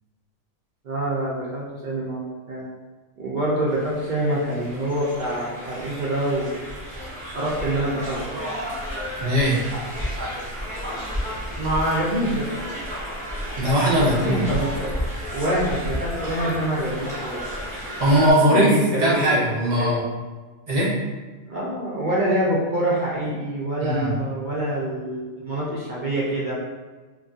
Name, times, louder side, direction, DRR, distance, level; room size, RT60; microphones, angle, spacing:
voice 1, 0.8-2.7 3.2-6.6 7.3-8.4 11.6-12.5 14.1-14.9 15.3-17.4 18.5-20.0 21.5-26.5, right 1 dB, 65° right, -6 dB, 0.5 m, -26 dB
sound 1, 3.7-18.3, equal, 5° left, 0.8 m, -32 dB
voice 2, 9.2-9.6 13.6-14.4 18.0-18.7 19.0-20.0 20.7-20.9 23.8-24.1, equal, 40° right, -7 dB, 0.8 m, -19 dB
2.9 x 2.6 x 2.4 m, 1.3 s
omnidirectional pair, 1.5 m